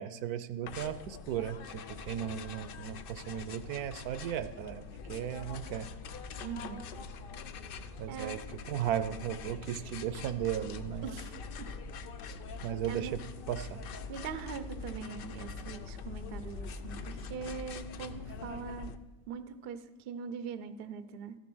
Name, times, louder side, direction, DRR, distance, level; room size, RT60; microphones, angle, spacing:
voice 1, 0.0-4.8 5.1-5.9 8.0-8.4 8.7-11.0 12.6-13.2 13.5-13.8, right 10 dB, 75° right, 13 dB, 1.1 m, -36 dB
sound 1, 0.7-19.0, left 4 dB, 90° left, 0.4 m, -43 dB
voice 2, 6.4-6.8 8.1-8.4 11.0-11.3 11.6-11.7 12.9-13.1 14.1-18.9 19.3-21.4, right 6 dB, 55° right, 11 dB, 0.6 m, -42 dB
13.5 x 7.2 x 6.1 m, 1.3 s
omnidirectional pair, 1.7 m